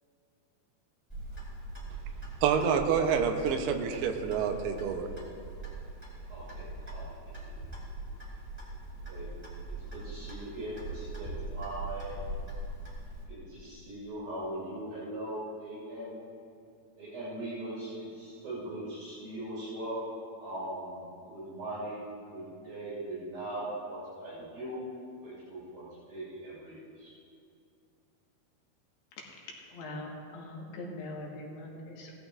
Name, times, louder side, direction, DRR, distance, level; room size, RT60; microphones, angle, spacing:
Clock, 1.1-13.2, right 2 dB, 5° left, 1.7 m, -41 dB
voice 1, 2.4-5.1, right 7 dB, 80° right, 5 dB, 2.8 m, -27 dB
voice 2, 6.3-7.5 9.1-9.3 9.9-12.2 13.3-16.1 17.0-20.0 20.4-24.8 25.2-27.1, right 1 dB, 60° right, -10 dB, 4.6 m, -40 dB
voice 3, 29.2-32.1, left 2 dB, 80° left, -2 dB, 3.5 m, -42 dB
17.5 x 13.5 x 2.5 m, 2.5 s
omnidirectional pair, 4.6 m